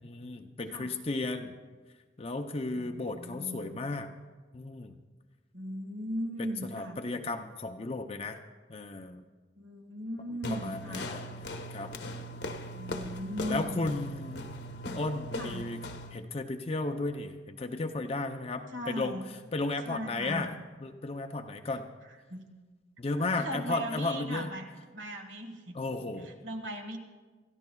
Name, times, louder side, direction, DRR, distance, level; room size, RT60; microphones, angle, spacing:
voice 1, 0.0-1.5 2.2-4.1 4.5-4.9 6.4-8.4 8.7-9.2 10.5-11.2 11.7-11.9 13.4-14.5 15.0-15.8 16.1-19.2 19.5-20.5 20.8-21.9 23.0-24.5 25.7-26.4, left 2 dB, 30° left, 5 dB, 0.5 m, -34 dB
voice 2, 2.7-3.7 5.5-7.0 9.6-11.1 12.7-13.8 15.3-15.7 18.7-19.3 19.9-20.5 22.3-22.5 23.2-25.8 26.2-27.0, equal, 80° right, 4 dB, 1.8 m, -38 dB
sound 1, 10.4-16.2, left 1 dB, 65° left, 1.0 m, -39 dB
28.0 x 13.5 x 2.3 m, 1.3 s
head